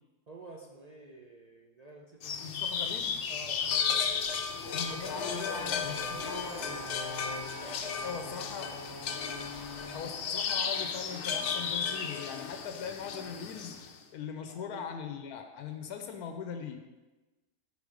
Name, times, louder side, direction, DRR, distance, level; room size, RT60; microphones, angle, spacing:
voice 1, 0.3-2.4 3.3-4.1 6.2-8.8 14.5-14.9, right 1 dB, 45° right, -1 dB, 0.5 m, -50 dB
sound 1, 2.2-13.9, left 6 dB, 60° left, 0.8 m, -34 dB
voice 2, 2.4-3.2 4.7-6.2 8.0-8.7 9.9-13.8 14.1-16.8, left 6 dB, 90° left, 6 dB, 1.1 m, -40 dB
Race car auto racing / Accelerating revving vroom, 4.0-10.7, left 2 dB, 20° left, 0.7 m, -43 dB
8.4 x 3.9 x 5.0 m, 1.1 s
omnidirectional pair, 1.6 m